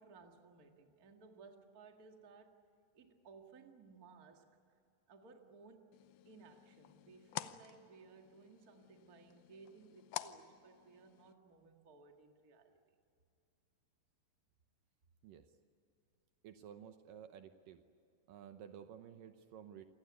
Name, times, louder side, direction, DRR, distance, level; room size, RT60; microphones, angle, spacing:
voice 1, 0.0-2.6 2.9-4.8 5.1-5.9 6.2-12.8, right 4 dB, 35° right, 4 dB, 1.6 m, -60 dB
sound 1, 5.9-11.3, left 14 dB, 85° left, 2.6 m, -50 dB
voice 2, 16.4-17.8 18.3-19.8, right 9 dB, 70° right, 8 dB, 2.4 m, -53 dB
28.5 x 18.5 x 9.6 m, 2.5 s
omnidirectional pair, 4.3 m